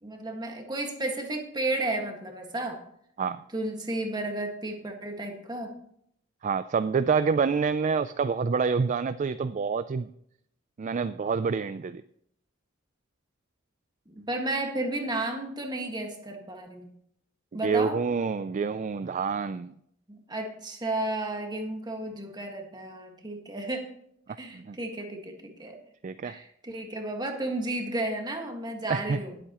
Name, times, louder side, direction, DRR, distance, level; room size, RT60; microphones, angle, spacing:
voice 1, 0.0-2.8 3.5-5.7 14.1-16.9 17.5-18.0 20.1-23.9 24.4-25.8 26.2-29.4, right 2 dB, 20° right, 3 dB, 1.7 m, -33 dB
voice 2, 6.4-10.1 10.8-12.0 17.5-19.7 24.5-24.8 26.0-26.4 28.9-29.2, right 5 dB, 40° right, 13 dB, 0.3 m, -27 dB
19.0 x 8.2 x 3.0 m, 0.71 s
head